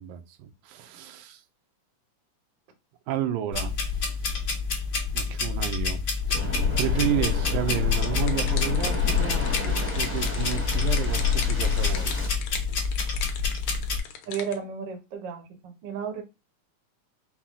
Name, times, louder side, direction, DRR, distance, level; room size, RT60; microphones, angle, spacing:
voice 1, 0.0-1.4 3.1-4.2 5.1-6.0 6.3-12.2, right 10 dB, 90° right, 2.1 m, -32 dB
sound 1, 3.5-14.0, left 5 dB, 45° left, 1.1 m, -27 dB
Waves surf, 6.3-12.3, left 2 dB, 15° right, 0.4 m, -30 dB
sound 2, 8.0-14.6, left 8 dB, 75° left, 1.9 m, -41 dB
voice 2, 14.3-16.2, right 7 dB, 65° right, 1.1 m, -33 dB
5.8 x 2.2 x 3.6 m
omnidirectional pair, 3.4 m